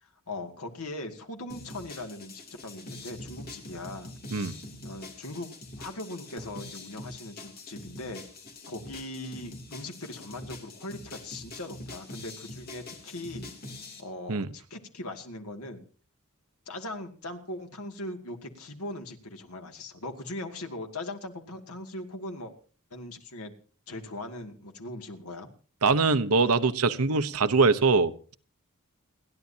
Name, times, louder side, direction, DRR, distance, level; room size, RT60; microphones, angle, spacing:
voice 1, 0.0-4.5 4.8-8.2 8.7-13.5 14.0-15.8 16.7-22.5 22.9-23.5 23.9-25.5, left 2 dB, 85° left, 5 dB, 2.3 m, -40 dB
sound 1, 1.5-14.0, left 2 dB, 45° left, 3.1 m, -44 dB
voice 2, 25.8-28.3, right 4 dB, 80° right, 10 dB, 1.0 m, -23 dB
29.5 x 11.0 x 2.8 m, 0.39 s
head